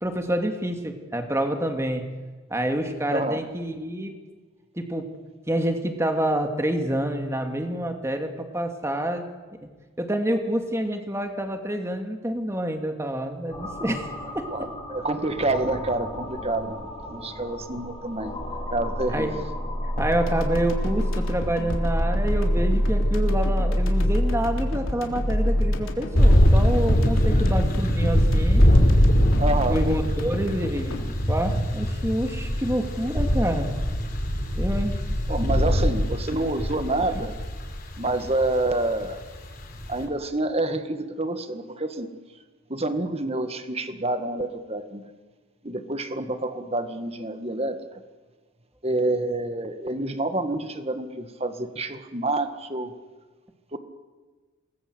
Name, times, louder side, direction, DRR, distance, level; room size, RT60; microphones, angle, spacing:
voice 1, 0.0-2.0 2.5-4.1 4.8-5.1 5.5-9.2 10.0-14.5 19.1-19.3 20.0-28.6 29.5-33.7 34.5-35.0, right 1 dB, 15° right, 5 dB, 2.4 m, -27 dB
sound 1, 13.5-25.8, equal, 20° left, 4.6 m, -27 dB
voice 2, 14.5-18.3 18.7-19.4 27.3-27.4 29.4-29.8 35.3-37.3 38.0-39.2 39.9-42.1 42.7-45.0 45.6-48.0 48.8-52.9 53.7-53.8, right 2 dB, 30° right, 8 dB, 1.8 m, -28 dB
sound 2, 20.0-32.4, left 1 dB, 70° left, 3.5 m, -35 dB
sound 3, 26.1-40.0, equal, 45° left, 4.5 m, -22 dB
28.5 x 20.5 x 8.0 m, 1.4 s
head